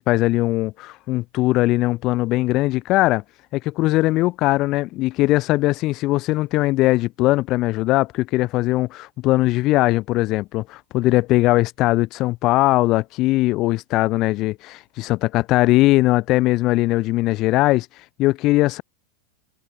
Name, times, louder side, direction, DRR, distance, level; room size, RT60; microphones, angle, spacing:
voice 1, 0.0-3.2 3.5-17.9 18.2-18.8, left 18 dB, 40° left, 4.4 m, -20 dB
figure-of-eight pair, 90°, 0 cm